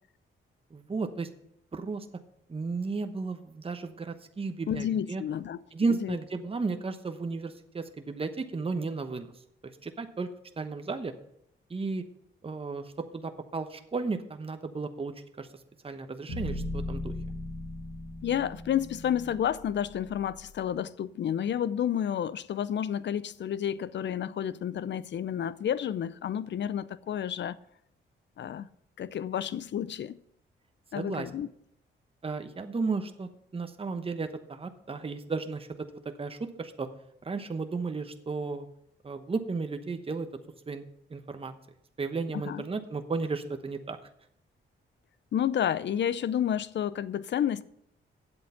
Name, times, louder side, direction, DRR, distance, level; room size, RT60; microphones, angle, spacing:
voice 1, 0.7-1.3 1.7-2.1 2.5-5.2 5.7-9.3 9.8-10.3 10.6-11.1 11.7-12.0 12.4-15.5 15.8-17.1 30.9-31.3 32.2-36.9 37.2-38.7 39.0-40.3 40.7-40.8 41.1-41.5 42.0-44.0, right 4 dB, 25° right, 0.9 m, -34 dB
voice 2, 4.7-5.6 5.9-6.2 18.2-27.6 28.4-28.7 29.0-30.2 30.9-31.5 42.3-42.7 45.3-47.6, left 9 dB, 60° left, 0.5 m, -30 dB
sound 1, 16.3-20.5, left 1 dB, 80° left, 3.6 m, -38 dB
8.9 x 7.9 x 5.7 m
cardioid pair, 80°, 21 cm